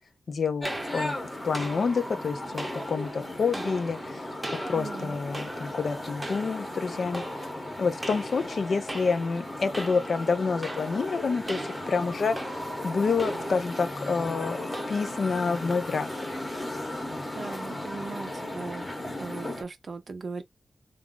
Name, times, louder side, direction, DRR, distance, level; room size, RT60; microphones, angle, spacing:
voice 1, 0.3-1.1 1.4-7.5 7.8-14.6 14.9-16.1, left 5 dB, 60° left, 0.5 m, -28 dB
sound 1, 0.6-19.6, left 1 dB, 15° left, 0.9 m, -36 dB
sound 2, 0.6-17.0, right 1 dB, 15° right, 0.7 m, -41 dB
voice 2, 4.7-5.2 17.3-18.8 19.2-20.4, right 4 dB, 50° right, 0.5 m, -38 dB
2.4 x 2.3 x 3.7 m
wide cardioid pair, 140°, 0 cm